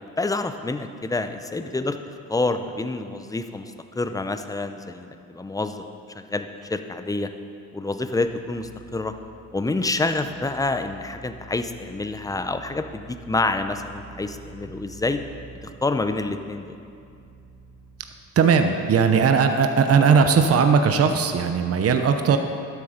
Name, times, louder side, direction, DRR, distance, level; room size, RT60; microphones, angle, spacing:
voice 1, 0.0-2.0 2.3-5.8 6.1-7.3 7.7-9.1 9.5-15.2 15.6-16.8, left 2 dB, 10° left, 8 dB, 0.6 m, -27 dB
sound 1, 8.2-18.2, right 4 dB, 55° left, 3.2 m, -47 dB
voice 2, 18.4-22.4, right 6 dB, 50° right, 7 dB, 0.9 m, -18 dB
12.5 x 8.0 x 5.1 m, 2.5 s
cardioid pair, 90°, 30 cm